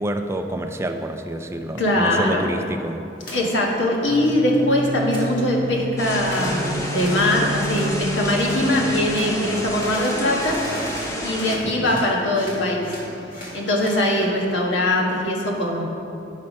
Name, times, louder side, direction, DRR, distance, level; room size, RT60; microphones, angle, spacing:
voice 1, 0.0-3.1 11.6-12.0, right 1 dB, 15° right, 6 dB, 0.3 m, -28 dB
voice 2, 1.8-2.4 3.3-10.6 11.2-12.9 13.5-15.9, left 1 dB, 80° left, -2 dB, 1.5 m, -21 dB
sound 1, 3.2-3.4 3.8-4.6 4.8-5.2 6.2-6.6 6.9-7.2 7.7-7.9 8.4-8.6 9.1-9.3 9.7-12.1 12.3-14.0, equal, 50° left, 2.1 m, -38 dB
sound 2, 4.0-13.2, right 1 dB, 60° right, 0.6 m, -32 dB
sound 3, 6.0-11.6, equal, 15° left, 0.7 m, -30 dB
9.7 x 5.7 x 5.2 m, 2.9 s
head